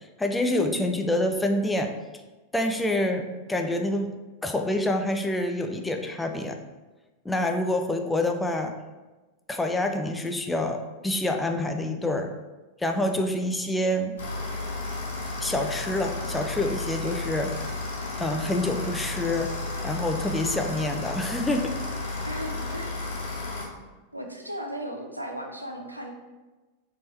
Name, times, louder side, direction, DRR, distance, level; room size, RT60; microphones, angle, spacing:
voice 1, 0.0-1.9 2.5-4.1 4.4-6.6 7.2-8.7 9.5-12.3 12.8-14.2 15.4-17.6 18.2-19.6 19.8-21.7 22.1-22.2, left 1 dB, 10° left, 4 dB, 0.4 m, -27 dB
sound 1, 14.2-23.7, left 2 dB, 60° left, 1.0 m, -33 dB
voice 2, 22.3-22.9 24.1-26.2, equal, 85° right, 2 dB, 0.5 m, -35 dB
4.3 x 3.0 x 3.0 m, 1.2 s
figure-of-eight pair, 90°, 0 cm